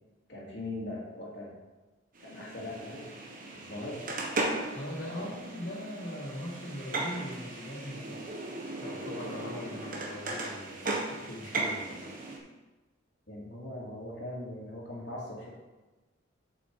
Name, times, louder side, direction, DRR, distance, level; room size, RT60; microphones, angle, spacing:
voice 1, 0.3-1.6 2.2-3.1 3.5-4.0 5.2-5.3 13.3-15.5, left 1 dB, 60° left, -4 dB, 2.5 m, -40 dB
sound 1, 2.1-12.4, right 2 dB, 45° right, 1.2 m, -37 dB
voice 2, 4.7-8.3 8.8-11.9, equal, 80° left, -10 dB, 2.1 m, -40 dB
7.6 x 7.1 x 4.7 m, 1.2 s
head